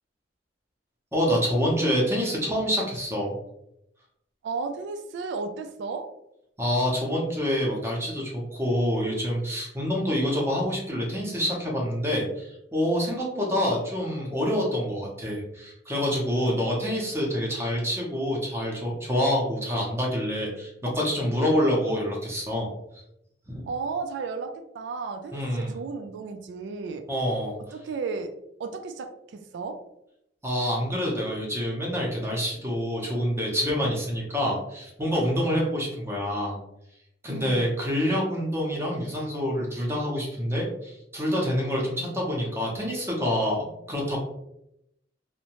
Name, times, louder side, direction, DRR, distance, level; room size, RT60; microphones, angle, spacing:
voice 1, 1.1-3.4 6.6-23.0 23.5-23.6 25.3-25.7 27.1-27.6 30.4-36.6 37.2-44.2, equal, 15° right, -3 dB, 0.6 m, -27 dB
voice 2, 4.4-6.1 13.4-13.6 23.6-27.1 27.7-28.3 28.6-29.8 37.3-37.7, right 4 dB, 70° right, 7 dB, 0.3 m, -34 dB
2.7 x 2.1 x 2.9 m, 0.82 s
head